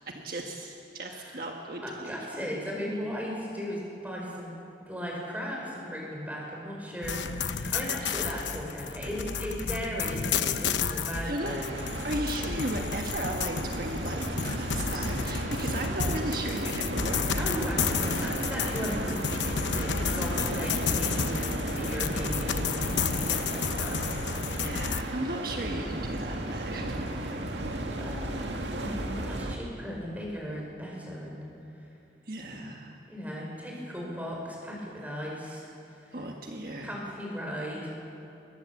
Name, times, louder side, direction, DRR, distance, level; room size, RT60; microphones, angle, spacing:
voice 1, 0.1-2.5 8.0-8.2 11.2-11.5 12.0-17.5 24.5-27.0 32.3-33.0 36.1-36.9, right 1 dB, 55° right, 1 dB, 1.4 m, -36 dB
voice 2, 1.1-1.4 1.8-4.6 4.9-11.7 17.1-19.2 19.5-24.5 28.0-31.4 33.0-35.7 36.0-36.2 36.8-37.9, equal, 10° right, -2 dB, 5.3 m, -37 dB
sound 1, 7.0-25.0, left 6 dB, 90° left, 1.0 m, -31 dB
sound 2, 11.4-29.6, right 1 dB, 80° right, 2.1 m, -34 dB
23.0 x 20.5 x 7.2 m, 2.8 s
head